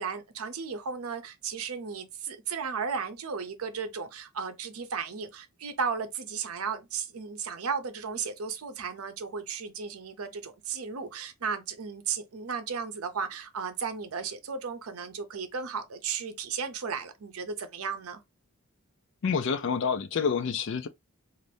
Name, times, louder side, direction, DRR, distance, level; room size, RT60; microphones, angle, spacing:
voice 1, 0.0-18.2, right 6 dB, 85° right, 0.6 m, -35 dB
voice 2, 19.2-20.9, left 6 dB, 55° left, 0.4 m, -28 dB
2.6 x 2.5 x 3.3 m
head